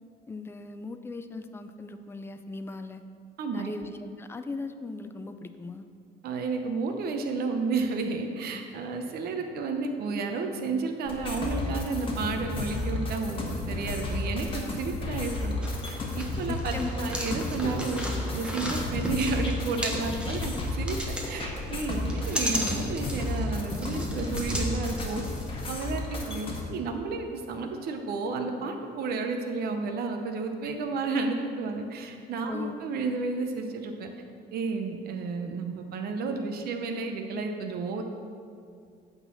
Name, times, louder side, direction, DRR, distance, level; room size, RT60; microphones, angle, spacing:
voice 1, 0.3-3.0 3.5-3.9 4.2-5.9 16.5-17.3 32.5-32.7, left 3 dB, 15° left, 8 dB, 0.4 m, -38 dB
voice 2, 3.4-3.7 6.2-15.5 15.9-18.0 18.3-21.0 21.2-25.2 25.7-34.1 34.5-38.0, right 4 dB, 65° right, 5 dB, 0.9 m, -32 dB
sound 1, 11.1-26.6, left 2 dB, 30° left, 1.5 m, -33 dB
sound 2, 15.6-25.8, equal, 5° right, 1.2 m, -36 dB
8.6 x 4.0 x 6.9 m, 2.3 s
cardioid pair, 110°, 17 cm